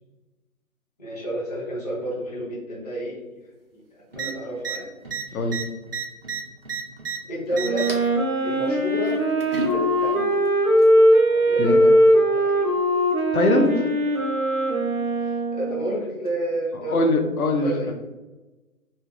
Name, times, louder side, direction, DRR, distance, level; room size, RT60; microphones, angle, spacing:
voice 1, 1.0-3.2 3.7-3.8 4.1-4.9 5.3-5.5 7.3-7.9 8.4-9.2 9.6-10.3 11.3-12.9 15.2-17.1 17.6-17.9, right 1 dB, 30° left, -6 dB, 0.5 m, -31 dB
sound 1, 4.1-4.3 4.6-4.8 5.0-7.2 7.5-8.1 9.1-9.7 10.8-10.9, right 4 dB, 45° right, 0.4 m, -30 dB
Wind instrument woodwind instrument, 7.6-16.0, equal, 80° right, 1.3 m, -20 dB
voice 2, 13.3-13.9 16.9-17.9, left 2 dB, 80° left, 4 dB, 0.7 m, -21 dB
3.0 x 2.2 x 3.2 m, 1.1 s
hypercardioid pair, 160°, 43 cm